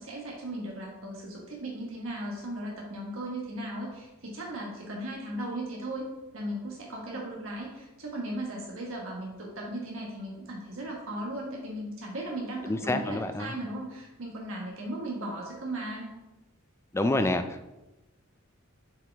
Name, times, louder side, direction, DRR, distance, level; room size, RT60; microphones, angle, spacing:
voice 1, 0.0-6.1 6.3-16.1, right 1 dB, 70° right, -2 dB, 1.4 m, -37 dB
voice 2, 12.7-13.5 16.9-17.7, left 2 dB, 15° left, 8 dB, 0.3 m, -28 dB
7.4 x 4.8 x 3.4 m, 1.0 s
head